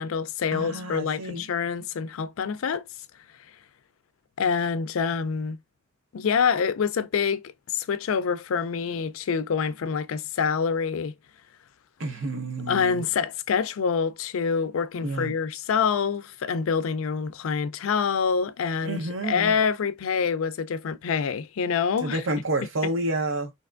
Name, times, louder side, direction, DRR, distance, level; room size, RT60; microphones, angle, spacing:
voice 1, 0.0-2.8 4.4-5.6 6.1-7.4 7.7-11.1 12.7-22.2, left 6 dB, 80° left, 0.4 m, -26 dB
voice 2, 0.5-1.5 12.0-13.0 15.0-15.3 18.8-19.5 22.0-23.5, right 2 dB, 70° right, 0.9 m, -29 dB
3.3 x 2.8 x 2.4 m
head